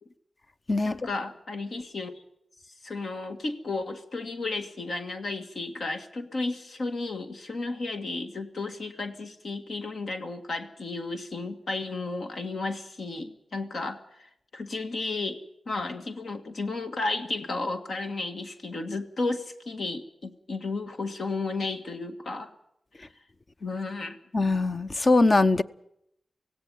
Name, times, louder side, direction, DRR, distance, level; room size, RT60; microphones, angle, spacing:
voice 1, 0.8-2.2 2.7-22.5 23.0-23.1 23.6-24.2, left 3 dB, 70° left, 1.8 m, -33 dB
voice 2, 24.3-25.6, left 2 dB, 40° left, 0.8 m, -21 dB
17.5 x 16.5 x 9.4 m
cardioid pair, 55°, 0 cm